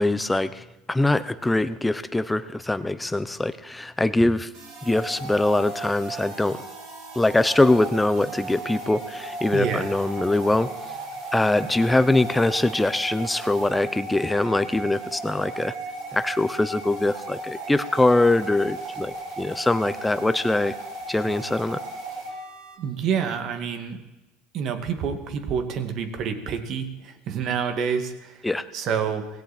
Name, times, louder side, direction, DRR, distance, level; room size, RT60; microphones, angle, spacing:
voice 1, 0.0-4.5 4.8-6.6 7.2-10.7 11.3-15.7 16.1-20.7 21.1-21.8 28.4-28.7, left 2 dB, 10° left, 13 dB, 0.9 m, -23 dB
sound 1, 4.5-22.8, right 2 dB, 70° right, 5.2 m, -36 dB
voice 2, 9.5-9.9 22.8-24.0 24.5-28.5 28.7-29.3, right 7 dB, 50° right, 8 dB, 2.2 m, -28 dB
18.5 x 16.5 x 4.4 m, 1.0 s
supercardioid pair, 90°, 0 cm